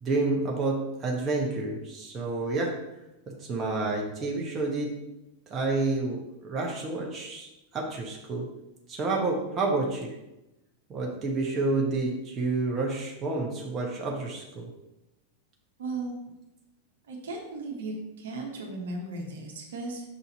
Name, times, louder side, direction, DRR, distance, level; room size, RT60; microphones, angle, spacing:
voice 1, 0.0-2.8 3.3-4.9 5.5-8.5 8.9-10.1 10.9-14.7, right 3 dB, 25° right, -1 dB, 1.1 m, -29 dB
voice 2, 15.8-16.2 17.1-20.0, right 2 dB, 60° right, 0 dB, 1.2 m, -36 dB
6.1 x 4.1 x 4.2 m, 0.94 s
figure-of-eight pair, 90°, 0 cm